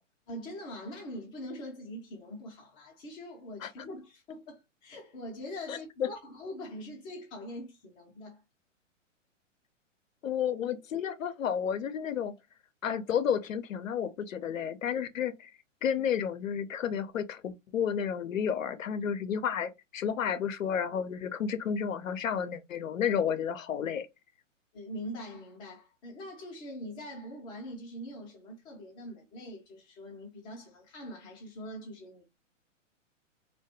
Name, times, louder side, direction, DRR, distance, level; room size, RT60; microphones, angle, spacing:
voice 1, 0.3-8.4 24.7-32.2, equal, 15° left, 0.4 m, -43 dB
voice 2, 5.7-6.1 10.2-12.3 12.8-15.5 15.8-24.1, left 8 dB, 90° left, 0.5 m, -31 dB
2.3 x 2.2 x 2.6 m
hypercardioid pair, 125°, 38 cm